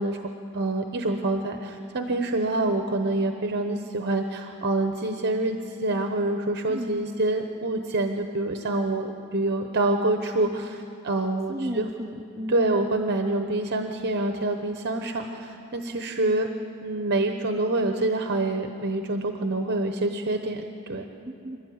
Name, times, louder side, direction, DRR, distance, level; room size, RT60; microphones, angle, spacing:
voice 1, 0.0-11.8 12.5-16.5 16.8-21.1, right 2 dB, 50° right, 5 dB, 0.9 m, -26 dB
voice 2, 6.6-7.1 11.5-12.7 21.2-21.6, equal, 15° right, 0 dB, 0.6 m, -34 dB
26.5 x 12.5 x 9.4 m, 2.7 s
head